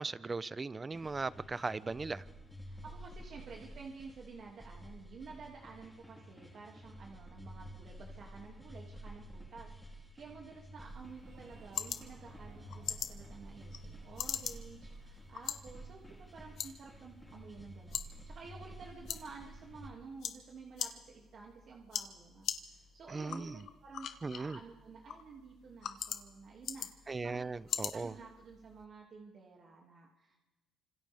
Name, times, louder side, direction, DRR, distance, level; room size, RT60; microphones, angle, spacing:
voice 1, 0.0-2.2 23.1-23.6 24.2-24.6 27.1-28.1, right 3 dB, 30° right, 0.7 m, -38 dB
sound 1, 0.9-19.9, right 1 dB, ahead, 4.5 m, -51 dB
voice 2, 2.6-30.4, right 4 dB, 60° right, 2.5 m, -52 dB
sound 2, 10.8-28.8, left 9 dB, 75° left, 1.3 m, -44 dB
Breathing, 11.2-16.4, right 5 dB, 85° right, 2.4 m, -62 dB
29.0 x 26.5 x 3.6 m
cardioid pair, 90°, 0 cm